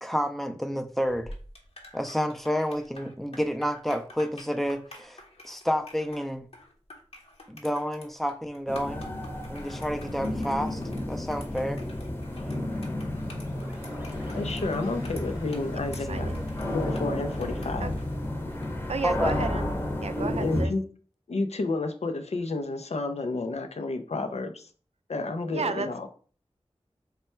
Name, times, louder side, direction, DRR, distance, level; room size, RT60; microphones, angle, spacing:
voice 1, 0.0-1.3 1.9-6.5 7.5-9.0 9.5-10.8 11.1-11.8 19.0-19.3, equal, ahead, 7 dB, 0.4 m, -29 dB
sound 1, 1.0-18.8, left 1 dB, 70° left, 1.0 m, -49 dB
sound 2, 8.7-20.7, left 1 dB, 20° left, 0.8 m, -32 dB
sound 3, 13.0-19.8, equal, 20° right, 1.0 m, -41 dB
voice 2, 14.3-16.4 16.7-18.0 20.4-20.8 21.3-24.7 25.1-26.1, left 3 dB, 90° left, 6 dB, 0.5 m, -31 dB
voice 3, 18.9-19.7 20.0-20.7 25.5-26.1, right 4 dB, 80° right, 9 dB, 0.4 m, -32 dB
3.2 x 2.2 x 4.3 m, 0.42 s
wide cardioid pair, 65°, 11 cm